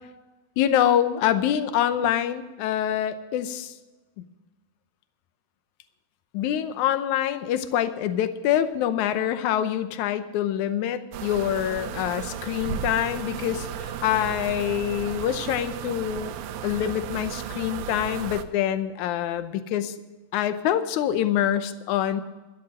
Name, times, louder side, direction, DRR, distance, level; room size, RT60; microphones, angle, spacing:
voice 1, 0.6-3.7 6.3-16.4 16.6-19.9 20.3-22.2, left 10 dB, 75° left, 11 dB, 1.9 m, -25 dB
sound 1, 11.1-18.4, right 9 dB, 85° right, 2.6 m, -34 dB
13.0 x 11.5 x 6.3 m, 1.2 s
omnidirectional pair, 4.1 m